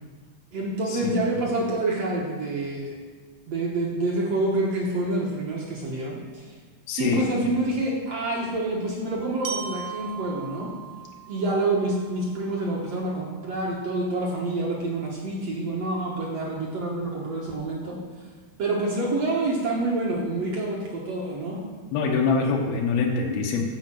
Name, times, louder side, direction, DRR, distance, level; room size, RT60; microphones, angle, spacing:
voice 1, 0.5-3.0 3.5-6.5 7.0-10.7 11.3-18.0 18.6-21.6, right 2 dB, 60° right, -2 dB, 1.8 m, -27 dB
voice 2, 6.9-7.3 21.9-23.7, left 4 dB, 90° left, -1 dB, 3.0 m, -24 dB
Glockenspiel, 9.4-13.4, right 8 dB, 80° right, 2.6 m, -39 dB
10.5 x 5.2 x 7.6 m, 1.4 s
omnidirectional pair, 4.2 m